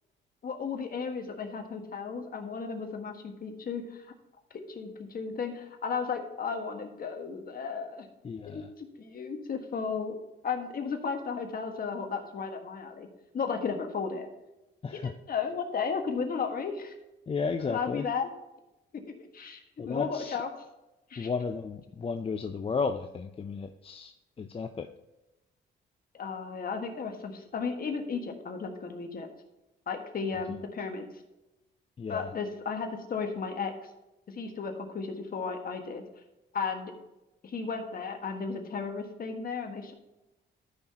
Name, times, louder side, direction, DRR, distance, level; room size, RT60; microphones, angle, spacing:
voice 1, 0.4-4.1 4.7-8.1 8.4-10.1 10.4-13.1 13.3-14.3 14.9-16.9 17.6-18.3 19.2-20.5 21.1-21.3 26.1-29.3 29.9-31.1 32.1-33.7 34.3-36.0 36.5-36.9 37.4-39.9, left 5 dB, 45° left, 4 dB, 1.6 m, -34 dB
voice 2, 8.2-8.7 14.8-15.1 17.3-18.1 19.8-20.4 21.2-24.9 32.0-32.3, left 5 dB, 30° left, 7 dB, 0.5 m, -33 dB
13.0 x 5.9 x 2.9 m, 0.97 s
cardioid pair, 90°, 20 cm